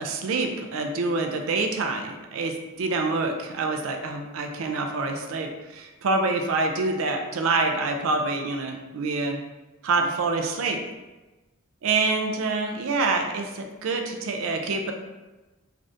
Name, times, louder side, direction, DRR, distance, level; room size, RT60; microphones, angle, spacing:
voice 1, 0.0-9.4 9.8-10.8 11.8-14.9, right 3 dB, 75° right, 4 dB, 0.4 m, -26 dB
3.3 x 2.4 x 2.5 m, 1.1 s
head